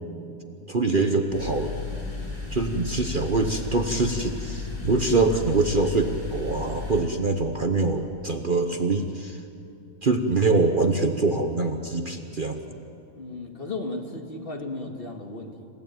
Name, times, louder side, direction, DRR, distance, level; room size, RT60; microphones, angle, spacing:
voice 1, 0.7-1.8 2.5-9.4 10.0-12.8, right 3 dB, 40° right, 6 dB, 1.2 m, -24 dB
sound 1, 1.3-7.0, left 3 dB, 80° left, 5.9 m, -34 dB
voice 2, 13.2-15.7, left 2 dB, 40° left, 3 dB, 2.1 m, -35 dB
28.0 x 16.0 x 9.1 m, 2.6 s
omnidirectional pair, 1.5 m